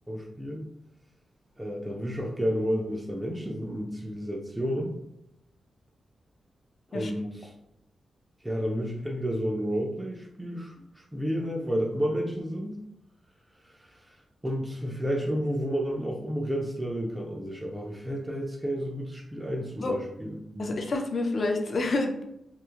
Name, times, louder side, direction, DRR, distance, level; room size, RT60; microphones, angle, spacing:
voice 1, 0.1-0.6 1.6-4.9 6.9-7.5 8.4-12.8 13.6-14.2 14.4-20.8, equal, 10° right, -2 dB, 0.4 m, -31 dB
voice 2, 20.6-22.2, left 2 dB, 50° left, 3 dB, 0.4 m, -28 dB
3.0 x 2.4 x 2.3 m, 0.82 s
wide cardioid pair, 115°, 0 cm